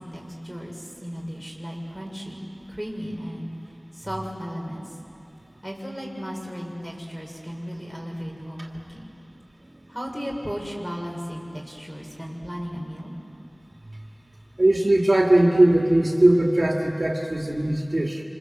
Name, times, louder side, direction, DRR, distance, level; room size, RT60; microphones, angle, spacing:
voice 1, 0.0-2.4 2.7-3.5 3.9-5.0 5.6-9.1 9.9-13.1, equal, 5° left, -1 dB, 6.2 m, -35 dB
voice 2, 14.6-18.2, right 1 dB, 55° right, 0 dB, 2.2 m, -19 dB
28.0 x 26.5 x 8.0 m, 2.7 s
wide cardioid pair, 45°, 0 cm